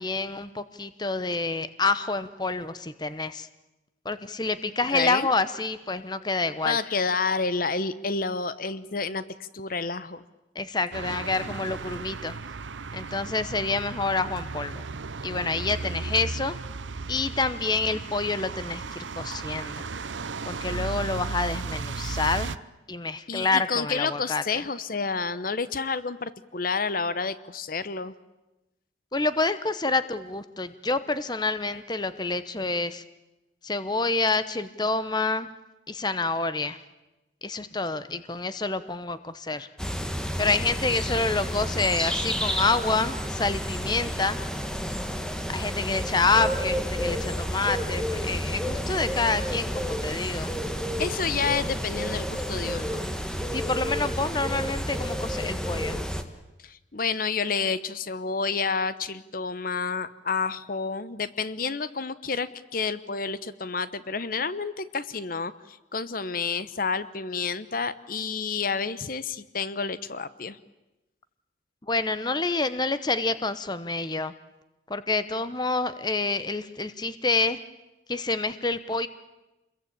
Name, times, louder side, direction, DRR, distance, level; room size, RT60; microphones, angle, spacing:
voice 1, 0.0-3.5 4.0-6.8 10.5-12.3 12.9-14.8 15.2-16.5 17.1-19.9 20.5-22.5 22.9-24.6 29.1-33.0 33.6-35.5 35.9-36.8 37.4-39.7 40.4-44.4 45.5-50.5 53.5-56.0 71.9-74.3 74.9-77.6 78.1-79.1, left 3 dB, 20° left, 13 dB, 0.9 m, -27 dB
voice 2, 4.9-5.3 6.6-10.2 23.3-28.1 51.0-53.0 56.6-70.6, left 5 dB, 50° left, 15 dB, 0.9 m, -29 dB
sound 1, 10.9-22.6, right 4 dB, 80° right, 0.8 m, -35 dB
sound 2, 39.8-56.2, equal, 5° left, 1.6 m, -30 dB
27.5 x 22.0 x 8.8 m, 1.0 s
head